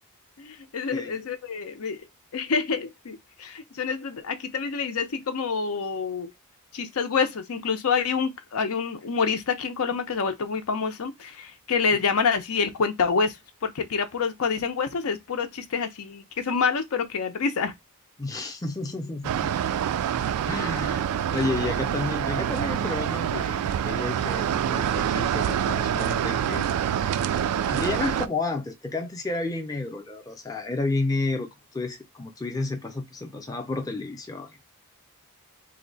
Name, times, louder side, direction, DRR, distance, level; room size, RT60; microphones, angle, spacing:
voice 1, 0.4-2.0 2.3-6.3 6.7-17.7, left 5 dB, 70° left, 0.5 m, -27 dB
voice 2, 18.2-19.5 20.5-26.7 27.7-34.6, left 3 dB, 15° left, 0.5 m, -31 dB
sound 1, 19.2-28.3, right 9 dB, 80° right, 0.3 m, -26 dB
2.8 x 2.1 x 3.9 m
head